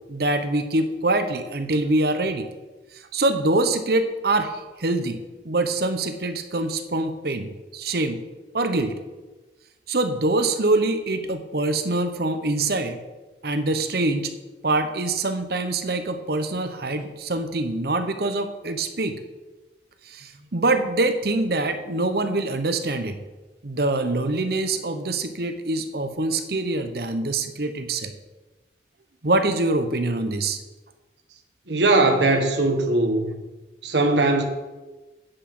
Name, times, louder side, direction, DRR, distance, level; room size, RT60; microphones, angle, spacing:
voice 1, 0.1-2.5 3.1-5.2 5.4-8.2 8.5-9.0 9.9-13.0 13.4-14.3 14.6-19.2 20.1-23.2 23.6-28.1 29.2-30.6, right 2 dB, 60° right, 8 dB, 0.9 m, -24 dB
voice 2, 31.7-33.4 33.8-34.5, right 2 dB, 75° right, 5 dB, 1.3 m, -20 dB
9.8 x 6.0 x 6.1 m, 1.2 s
head